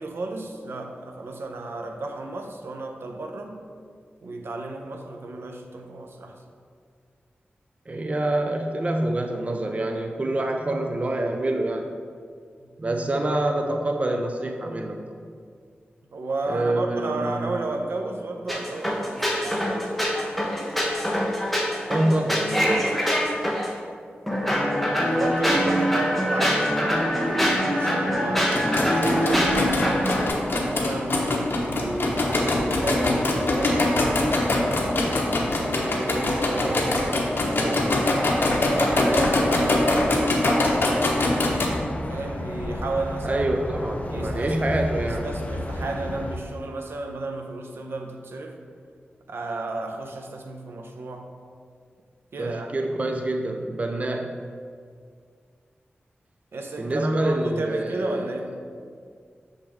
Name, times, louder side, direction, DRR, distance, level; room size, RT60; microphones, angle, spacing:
voice 1, 0.0-3.6 4.2-6.4 16.1-19.6 24.9-28.6 28.8-30.0 30.5-35.1 35.6-40.5 41.8-43.5 44.1-48.6 49.3-51.4 52.3-52.7 56.5-58.6, right 2 dB, 80° right, 3 dB, 0.7 m, -33 dB
voice 2, 7.9-11.9 12.8-15.2 16.5-17.5 21.9-23.0 25.6-25.7 43.2-45.3 52.4-54.3 56.8-58.3, right 1 dB, 35° right, 3 dB, 0.5 m, -26 dB
sound 1, 18.5-23.7 24.3-30.3, equal, 5° left, 1.0 m, -24 dB
sound 2, 28.5-41.7, left 2 dB, 65° left, 0.9 m, -23 dB
sound 3, 31.6-46.4, left 1 dB, 35° left, 0.6 m, -34 dB
6.6 x 5.2 x 3.5 m, 2.1 s
wide cardioid pair, 80°, 4 cm